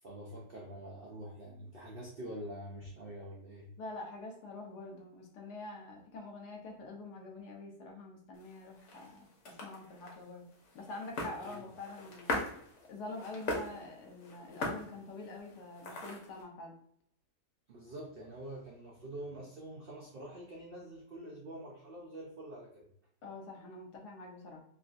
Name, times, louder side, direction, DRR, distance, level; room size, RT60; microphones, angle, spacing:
voice 1, 0.0-3.7 11.4-11.6 17.7-22.9, right 1 dB, 85° right, -2 dB, 0.5 m, -46 dB
voice 2, 3.8-10.4 10.7-12.4 12.9-16.7 23.2-24.6, left 2 dB, 85° left, 1 dB, 1.3 m, -46 dB
sound 1, 8.3-16.4, left 2 dB, 55° left, 1.0 m, -41 dB
3.5 x 2.3 x 2.5 m, 0.68 s
omnidirectional pair, 1.7 m